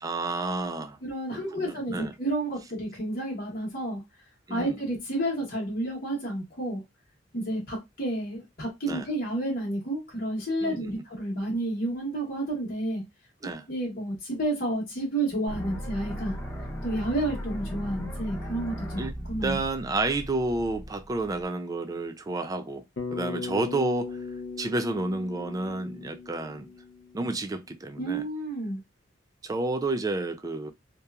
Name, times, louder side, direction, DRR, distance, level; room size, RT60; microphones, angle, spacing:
voice 1, 0.0-1.0 1.3-2.1 4.5-4.8 8.8-9.1 10.6-10.9 13.4-13.6 19.0-19.1 19.4-22.8 23.1-24.2 24.6-26.7 27.1-28.2 29.4-30.7, right 2 dB, 20° right, 0.3 m, -30 dB
voice 2, 1.0-4.0 4.5-6.8 7.3-13.0 13.7-16.4 16.8-19.6 28.0-28.8, right 1 dB, 55° left, 1.0 m, -30 dB
sound 1, 15.5-21.4, equal, 10° left, 0.8 m, -37 dB
Bass guitar, 23.0-27.3, left 4 dB, 70° left, 0.6 m, -38 dB
2.8 x 2.2 x 2.3 m
head